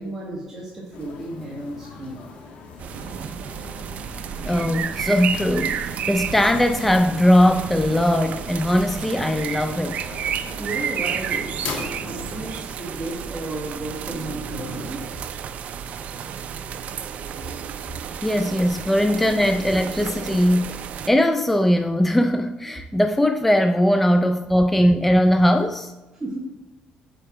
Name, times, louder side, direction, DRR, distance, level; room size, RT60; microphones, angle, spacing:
voice 1, 0.0-2.4 10.6-15.2 26.2-26.4, right 1 dB, 15° right, 1.5 m, -33 dB
sound 1, 0.9-12.6, left 4 dB, 85° left, 1.4 m, -40 dB
sound 2, 2.8-21.1, right 7 dB, 55° right, 0.4 m, -31 dB
voice 2, 4.4-10.0 18.2-25.9, equal, 5° left, 0.3 m, -20 dB
7.8 x 4.4 x 4.8 m
cardioid pair, 125°, 3 cm